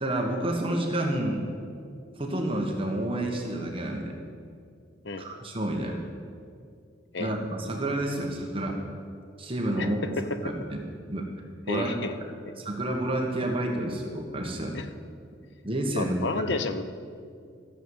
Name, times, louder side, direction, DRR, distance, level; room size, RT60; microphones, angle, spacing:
voice 1, 0.0-1.5 2.2-4.2 5.2-6.0 7.2-8.8 9.4-10.8 11.1-11.3 11.7-12.1 12.6-14.8 15.6-16.2 16.5-16.6, right 1 dB, 30° right, 1 dB, 1.4 m, -29 dB
voice 2, 5.0-5.4 7.1-7.3 9.8-9.9 10.2-10.3 11.7-12.1 14.7-14.9 16.0-16.8, left 3 dB, 65° left, 9 dB, 0.8 m, -31 dB
14.0 x 7.1 x 7.9 m, 2.3 s
head